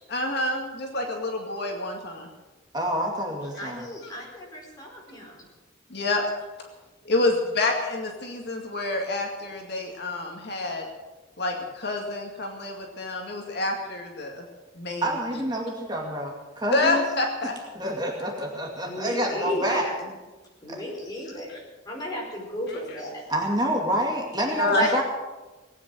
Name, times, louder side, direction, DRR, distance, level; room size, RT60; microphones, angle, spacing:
voice 1, 0.1-2.3 5.9-6.2 7.0-10.9 11.4-14.5 14.8-15.1 16.7-17.5 21.5-21.6 22.7-23.0 24.6-24.9, left 2 dB, 55° left, 1 dB, 2.2 m, -28 dB
voice 2, 2.7-3.8 15.0-17.0 17.7-19.9 20.7-20.8 23.3-25.0, right 1 dB, 20° right, 0 dB, 2.2 m, -28 dB
voice 3, 3.6-5.4 18.8-20.1 20.6-21.6 21.9-23.2 24.6-25.0, equal, 20° left, -2 dB, 5.0 m, -33 dB
19.0 x 9.3 x 7.8 m, 1.2 s
head